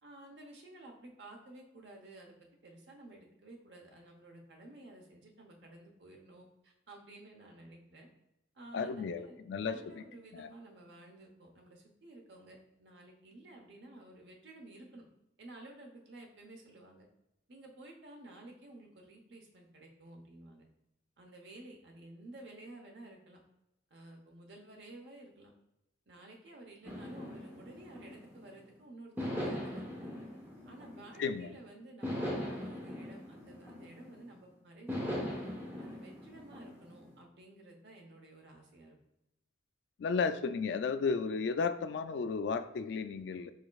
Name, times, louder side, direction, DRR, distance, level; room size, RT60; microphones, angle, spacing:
voice 1, 0.0-2.4 2.6-8.1 8.5-9.4 9.6-15.0 15.4-17.1 17.5-20.6 21.2-23.4 23.9-25.5 26.1-30.2 30.6-35.3 35.8-39.0, right 2 dB, 70° right, 2 dB, 0.9 m, -53 dB
voice 2, 8.7-10.0 10.3-10.5 31.2-31.5 40.0-43.5, left 5 dB, 70° left, 12 dB, 0.3 m, -34 dB
sound 1, 26.8-28.6 29.2-31.4 32.0-34.3 34.9-37.1, equal, 10° right, 0.9 m, -40 dB
4.9 x 4.1 x 2.3 m, 0.89 s
head